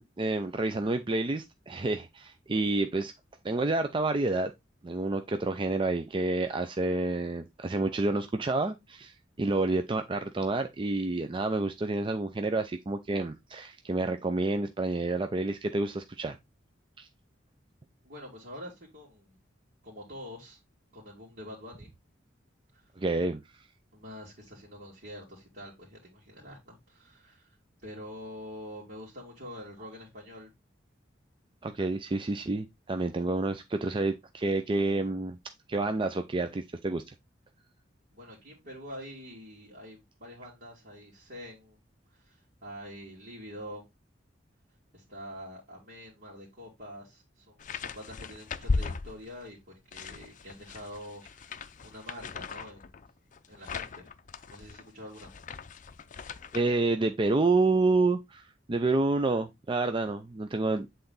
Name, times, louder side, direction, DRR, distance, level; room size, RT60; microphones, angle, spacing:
voice 1, 0.0-3.1 3.4-4.5 4.8-16.4 17.0-17.1 23.0-23.4 31.6-35.4 35.7-37.1 56.5-60.9, right 2 dB, 25° right, 0.5 m, -29 dB
voice 2, 18.0-19.4 19.8-20.6 20.9-21.9 22.7-22.8 23.9-27.6 27.8-30.5 38.1-41.8 42.1-42.4 42.6-43.8 44.9-52.9 53.5-54.1 54.5-55.3, equal, 55° right, 2.7 m, -46 dB
sound 1, 47.6-49.5 49.9-56.6, left 4 dB, 40° left, 0.5 m, -37 dB
8.1 x 3.8 x 3.9 m
head